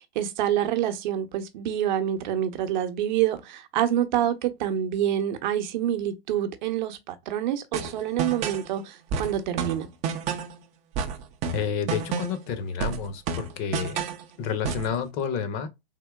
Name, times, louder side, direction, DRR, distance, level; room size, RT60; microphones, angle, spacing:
voice 1, 0.0-9.9, right 11 dB, 50° right, 0.8 m, -27 dB
sound 1, 7.7-8.7 9.1-10.6 11.0-12.5 12.8-14.2 14.6-14.9, right 6 dB, 25° right, 0.4 m, -30 dB
voice 2, 11.5-14.0 14.4-15.7, left 7 dB, 35° left, 0.7 m, -30 dB
3.6 x 2.7 x 2.2 m
hypercardioid pair, 120°, 30 cm